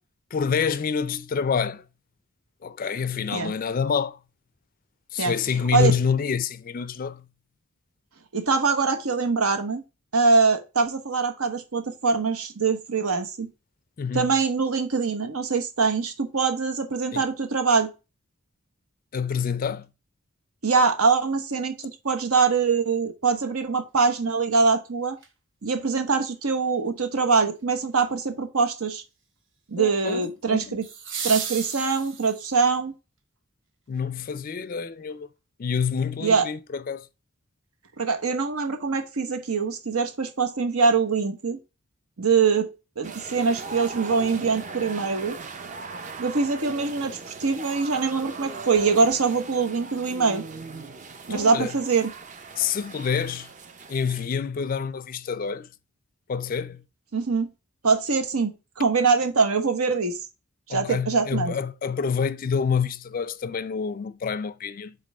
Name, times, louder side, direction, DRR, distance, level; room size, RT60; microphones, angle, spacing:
voice 1, 0.3-1.8 2.6-4.2 5.1-7.2 14.0-14.4 17.1-17.2 19.1-19.9 29.8-30.8 33.9-35.3 35.6-37.1 51.3-51.7 52.6-53.5 53.9-55.7 56.3-56.8 60.7-65.0, left 6 dB, 40° left, 0.4 m, -27 dB
voice 2, 8.3-9.8 10.1-13.5 14.1-17.9 20.6-25.2 25.6-29.0 29.7-30.8 31.2-32.9 36.2-36.5 38.0-41.6 42.2-42.7 43.0-45.4 46.2-50.4 51.3-52.1 57.1-57.5 57.8-60.2 60.7-61.5, right 4 dB, 85° right, 1.0 m, -23 dB
sound 1, 25.2-25.3 30.8-32.6 34.8-34.9, right 6 dB, 55° right, 1.1 m, -34 dB
sound 2, 43.0-54.3, right 4 dB, 35° right, 0.6 m, -39 dB
5.2 x 3.9 x 5.3 m
head